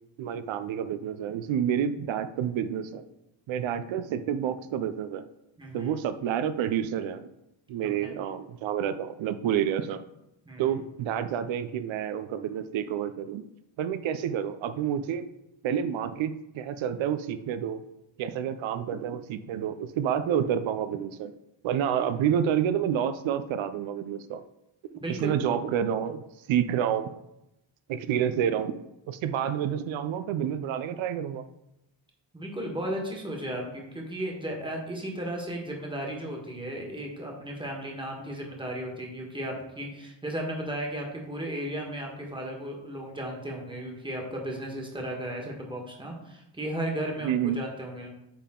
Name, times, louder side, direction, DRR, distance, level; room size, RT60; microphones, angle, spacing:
voice 1, 0.2-3.0 3.5-5.2 5.7-7.3 7.7-10.0 10.6-13.4 13.8-15.3 15.6-17.8 18.2-21.3 21.6-24.4 25.1-26.2 26.5-27.1 27.9-31.4 47.2-47.6, right 9 dB, 85° right, 11 dB, 0.5 m, -29 dB
voice 2, 5.6-5.9 7.8-8.2 10.4-10.7 24.9-25.4 32.3-48.1, right 1 dB, 10° right, 0 dB, 1.4 m, -35 dB
8.9 x 3.6 x 3.7 m, 0.87 s
wide cardioid pair, 125°, 45 cm